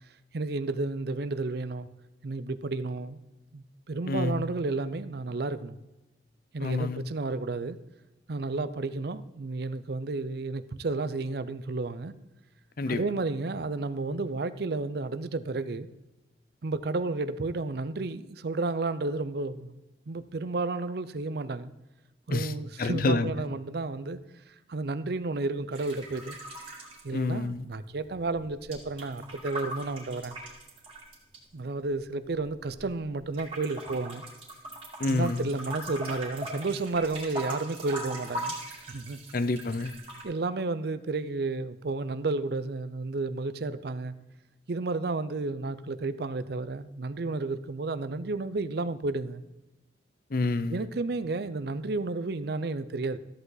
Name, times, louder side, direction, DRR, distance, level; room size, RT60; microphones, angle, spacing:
voice 1, 0.3-1.9 2.2-3.2 3.5-5.8 6.5-7.8 8.3-12.1 12.9-15.9 16.6-19.8 20.1-21.7 22.3-24.2 24.7-26.4 27.0-30.4 31.5-34.2 35.1-38.6 38.9-39.2 40.2-44.1 44.7-49.4 50.7-53.2, right 3 dB, 60° right, 0.5 m, -32 dB
voice 2, 4.1-4.4 6.6-7.0 12.8-13.0 22.3-22.5 22.8-23.3 27.1-27.6 35.0-35.5 39.3-39.9 50.3-50.9, left 3 dB, 50° left, 0.5 m, -28 dB
sound 1, 25.7-27.8 28.0-31.4 32.0-33.0 33.3-40.2, right 1 dB, 30° right, 2.4 m, -40 dB
13.5 x 8.0 x 4.0 m
head